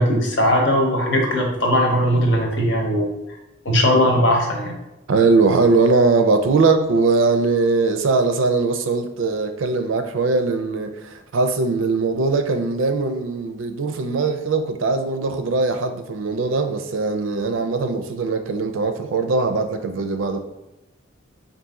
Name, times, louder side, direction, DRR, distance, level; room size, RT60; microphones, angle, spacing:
voice 1, 0.0-3.1 3.6-4.8, equal, 65° left, 0.9 m, -19 dB
voice 2, 5.1-20.4, right 3 dB, 85° right, 0.5 m, -20 dB
4.0 x 2.6 x 3.7 m
head